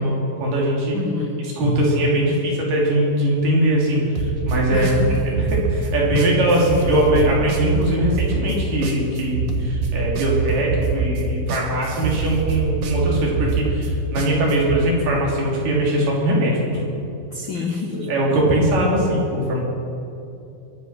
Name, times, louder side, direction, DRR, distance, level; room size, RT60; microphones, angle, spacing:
voice 1, 0.0-1.0 1.6-4.9 5.2-16.8 18.1-19.6, right 1 dB, 85° right, -3 dB, 4.6 m, -21 dB
voice 2, 0.9-1.5 4.7-5.4 17.3-18.1, left 5 dB, 85° left, 3 dB, 1.0 m, -28 dB
sound 1, 4.2-14.8, right 5 dB, 60° right, 2.3 m, -24 dB
23.5 x 8.1 x 5.9 m, 2.7 s
omnidirectional pair, 3.7 m